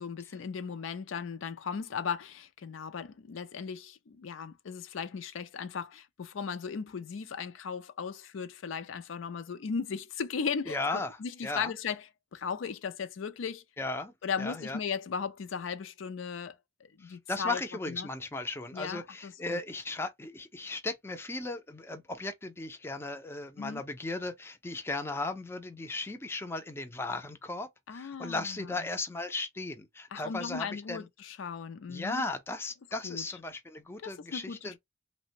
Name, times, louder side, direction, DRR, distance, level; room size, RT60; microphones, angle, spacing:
voice 1, 0.0-12.0 12.3-13.6 14.2-17.6 17.9-18.1 18.7-19.6 23.6-23.8 27.9-28.8 30.1-32.2 33.0-33.2 34.0-34.8, left 6 dB, 75° left, 0.4 m, -37 dB
voice 2, 10.7-11.2 11.4-11.7 13.8-14.8 17.0-31.1 31.9-34.8, left 2 dB, 10° left, 0.4 m, -36 dB
3.2 x 2.1 x 2.7 m
head